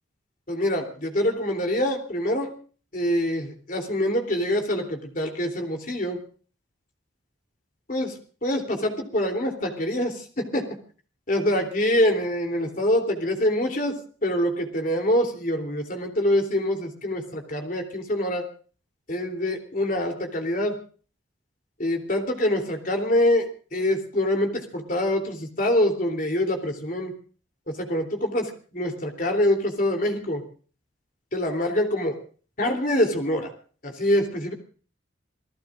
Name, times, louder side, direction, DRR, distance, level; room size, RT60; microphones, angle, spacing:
voice 1, 0.5-2.5 2.9-6.2 7.9-10.7 11.3-14.0 14.2-18.4 19.1-20.8 21.8-27.1 27.7-30.4 31.3-32.2 32.6-33.5 33.8-34.5, left 1 dB, 45° left, 4 dB, 3.3 m, -25 dB
28.5 x 18.5 x 2.6 m, 0.41 s
head